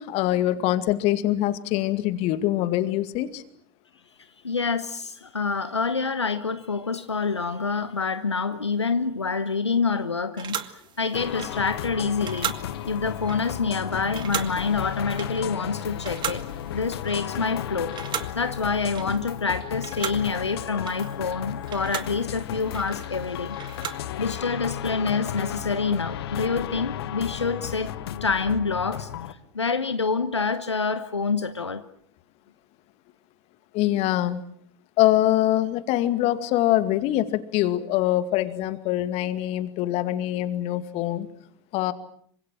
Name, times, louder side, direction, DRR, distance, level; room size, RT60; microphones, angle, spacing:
voice 1, 0.0-3.4 33.7-34.4 35.0-41.3 41.7-41.9, left 14 dB, 45° left, 2.2 m, -24 dB
voice 2, 4.2-12.6 12.9-16.4 16.7-17.9 18.3-23.6 24.2-27.9 28.2-31.8, left 4 dB, 85° left, 1.1 m, -27 dB
sound 1, 10.4-17.6 17.9-19.5 19.8-24.1, right 9 dB, 35° right, 2.3 m, -37 dB
sound 2, 11.1-29.3, left 11 dB, 65° left, 1.5 m, -34 dB
27.5 x 25.0 x 7.6 m
figure-of-eight pair, 80°, 14 cm